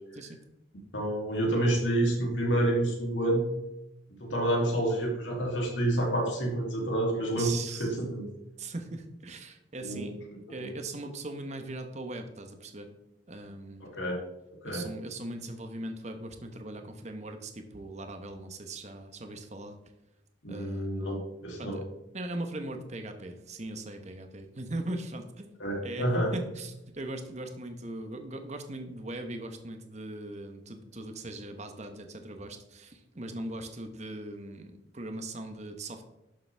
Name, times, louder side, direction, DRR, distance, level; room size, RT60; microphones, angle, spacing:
voice 1, 0.9-3.4 4.2-8.3 9.8-10.1 10.5-10.7 13.8-14.2 14.6-14.9 20.4-21.8 25.6-26.3, right 1 dB, 80° left, -1 dB, 2.9 m, -28 dB
voice 2, 7.4-7.9 8.6-10.1 10.5-12.9 13.3-13.9 14.6-19.7 20.5-21.0 21.6-21.8 22.1-25.5 25.8-36.0, right 2 dB, 35° right, 6 dB, 1.1 m, -39 dB
11.5 x 7.0 x 3.4 m, 0.89 s
head